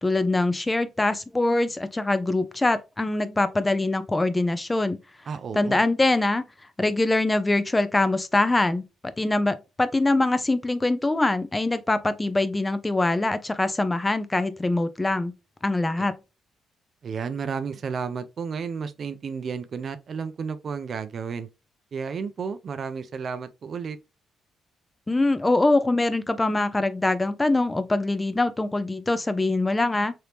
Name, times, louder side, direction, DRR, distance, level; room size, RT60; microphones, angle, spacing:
voice 1, 0.0-5.0 5.5-6.4 6.8-8.9 9.2-15.3 15.6-16.1 25.1-30.1, left 2 dB, 15° left, 0.4 m, -23 dB
voice 2, 5.3-5.8 16.0-16.1 17.0-21.5 21.9-24.0, right 6 dB, 50° right, 0.4 m, -32 dB
3.3 x 2.7 x 2.9 m
cardioid pair, 90°, 0 cm